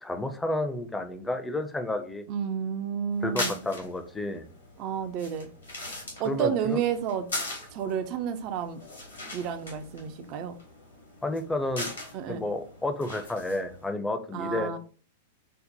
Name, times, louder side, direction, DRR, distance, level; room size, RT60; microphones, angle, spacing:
voice 1, 0.0-2.2 3.2-4.4 6.2-6.8 11.2-11.9 12.3-14.7, left 1 dB, 10° left, 7 dB, 0.5 m, -31 dB
voice 2, 2.3-3.6 4.8-5.5 6.2-7.3 7.7-8.8 9.3-10.6 12.1-12.4 14.3-14.8, right 8 dB, 45° right, 9 dB, 0.4 m, -30 dB
sound 1, 3.1-13.9, left 2 dB, 80° left, 1.7 m, -40 dB
5.2 x 2.1 x 2.7 m, 0.40 s
figure-of-eight pair, 100°, 0 cm